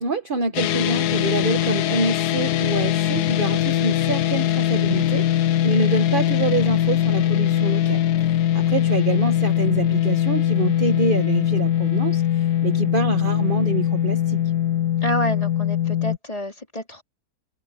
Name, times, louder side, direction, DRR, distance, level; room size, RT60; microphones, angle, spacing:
voice 1, 0.0-14.4, right 3 dB, 35° right, 1.1 m, -26 dB
sound 1, 0.5-16.2, left 11 dB, 70° left, 1.2 m, -21 dB
voice 2, 15.0-17.0, right 1 dB, 20° left, 4.1 m, -28 dB
omnidirectional pair, 1.8 m